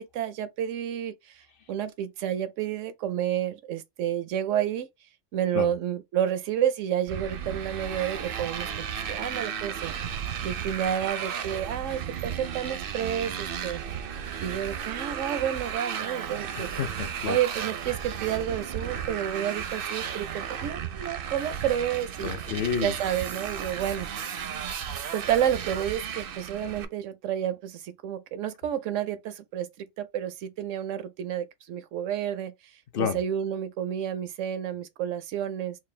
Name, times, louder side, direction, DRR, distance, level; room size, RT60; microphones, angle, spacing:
voice 1, 0.0-1.4 1.7-4.9 5.3-9.9 10.4-13.8 14.4-16.7 17.3-22.3 22.8-24.1 25.1-29.7 30.0-32.5 33.0-35.8, right 10 dB, 90° right, 1.0 m, -30 dB
Motorcycle, 7.1-26.8, right 8 dB, 60° right, 0.6 m, -34 dB
voice 2, 16.6-17.4 22.2-23.0 32.9-33.2, left 7 dB, 55° left, 0.7 m, -30 dB
4.3 x 2.3 x 3.2 m
omnidirectional pair, 1.3 m